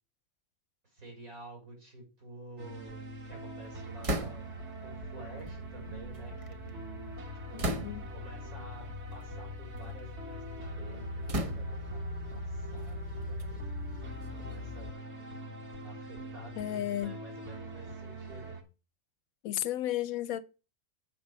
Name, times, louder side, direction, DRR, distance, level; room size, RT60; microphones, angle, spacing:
voice 1, 0.8-4.5 4.8-7.0 7.5-7.7 8.1-8.9 9.1-13.7 14.0-14.9 15.8-18.6, right 2 dB, 75° right, 4.4 m, -50 dB
sound 1, 2.6-18.6, right 1 dB, 50° right, 1.6 m, -42 dB
sound 2, 2.8-14.9, left 5 dB, 50° left, 0.6 m, -47 dB
sound 3, 4.0-4.7 5.6-6.7 7.6-8.3 9.1-9.3 9.8-10.5 11.3-12.0 12.8-14.7, right 1 dB, 35° right, 0.6 m, -37 dB
voice 2, 7.5-8.0 16.6-17.1 19.4-20.4, left 12 dB, 80° left, 1.0 m, -33 dB
7.3 x 5.4 x 6.3 m
omnidirectional pair, 1.5 m